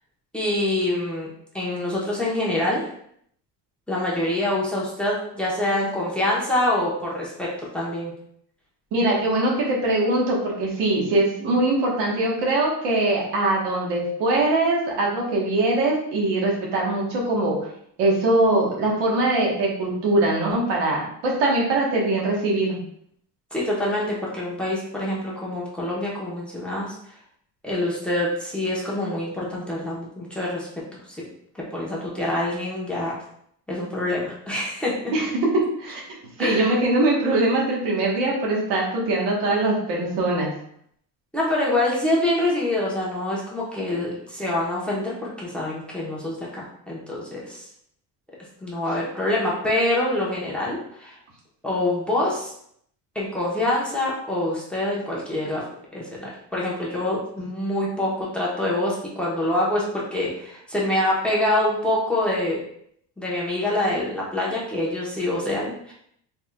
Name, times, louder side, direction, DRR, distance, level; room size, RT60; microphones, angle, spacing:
voice 1, 0.3-1.3 1.5-2.9 3.9-7.5 7.7-8.1 23.5-26.9 27.6-30.7 31.7-33.1 33.7-35.1 36.4-36.7 41.3-47.6 48.6-51.2 51.6-52.5 53.1-55.7 55.9-62.6 63.2-65.9, left 1 dB, 5° left, -5 dB, 1.0 m, -25 dB
voice 2, 8.9-17.6 18.0-22.8 35.1-35.3 35.8-36.0 36.4-40.5, right 2 dB, 85° right, -3 dB, 1.4 m, -22 dB
4.1 x 3.5 x 2.3 m, 0.68 s
cardioid pair, 130°, 41 cm